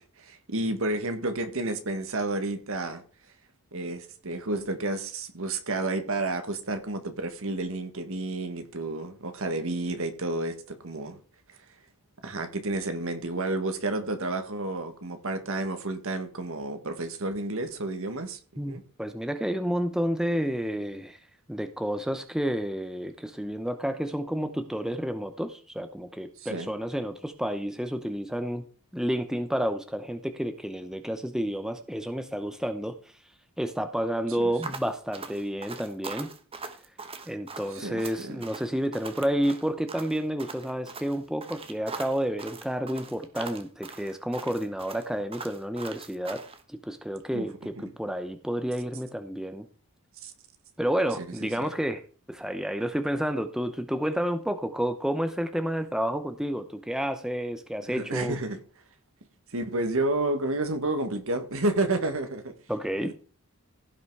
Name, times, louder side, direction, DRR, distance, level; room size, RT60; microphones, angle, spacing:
voice 1, 0.2-3.0 3.7-11.2 12.2-18.4 18.6-18.8 26.4-26.7 34.3-34.5 37.7-38.4 47.3-47.5 47.7-47.9 50.2-50.3 51.2-51.6 57.9-58.6 59.5-62.5 63.0-63.1, right 2 dB, 65° right, 1.7 m, -31 dB
voice 2, 18.6-21.2 21.5-28.6 28.9-33.0 33.6-36.3 37.3-46.4 46.7-49.7 50.8-52.0 52.3-58.4 62.7-63.1, equal, 5° right, 0.8 m, -30 dB
sound 1, 34.6-46.6, right 4 dB, 25° right, 1.2 m, -41 dB
16.0 x 5.8 x 4.8 m
head